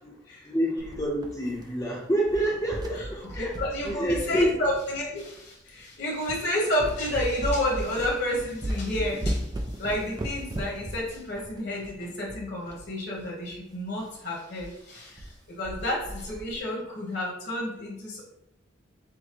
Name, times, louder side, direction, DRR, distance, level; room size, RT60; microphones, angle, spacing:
voice 1, 0.4-3.5 3.8-4.5, right 1 dB, 15° left, -3 dB, 0.7 m, -27 dB
sound 1, 0.8-1.9 2.2-5.2 5.8-5.9 6.3-6.5 6.8-12.9 13.1-13.2 13.5-13.6 14.0-14.2 14.6-14.7 15.0-15.4 15.6-16.6, right 1 dB, 20° right, 0.4 m, -36 dB
voice 2, 2.9-18.2, left 1 dB, 50° left, -2 dB, 1.2 m, -31 dB
6.3 x 2.1 x 3.0 m, 0.86 s
head